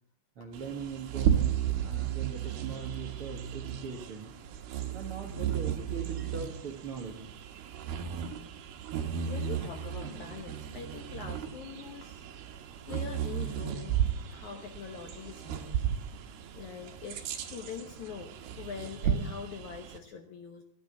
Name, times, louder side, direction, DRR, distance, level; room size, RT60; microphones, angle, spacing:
voice 1, 0.4-4.3 4.9-7.3, right 5 dB, 50° right, 1 dB, 1.8 m, -40 dB
Bird vocalization bird call bird song, 0.5-20.0, right 9 dB, 75° right, 3.2 m, -34 dB
voice 2, 9.3-12.2 12.5-14.0 14.3-15.8 16.2-16.3 16.5-20.6, left 6 dB, 65° left, 5 dB, 2.0 m, -43 dB
14.5 x 9.8 x 8.1 m, 0.63 s
omnidirectional pair, 4.6 m